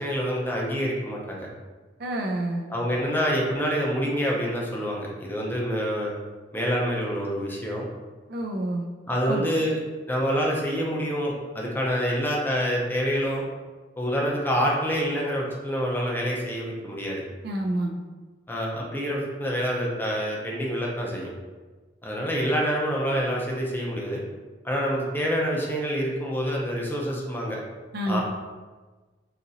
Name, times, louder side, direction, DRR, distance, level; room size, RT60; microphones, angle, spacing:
voice 1, 0.0-1.5 2.7-6.1 6.5-7.9 9.1-9.8 10.1-13.4 14.0-17.2 18.5-21.3 22.0-24.2 24.6-27.6 28.1-28.2, equal, 10° left, -3 dB, 0.6 m, -27 dB
voice 2, 2.0-2.6 8.3-8.9 9.2-9.4 17.4-17.9 27.9-28.2, right 1 dB, 60° right, 1 dB, 0.5 m, -28 dB
4.0 x 2.9 x 2.6 m, 1.3 s
head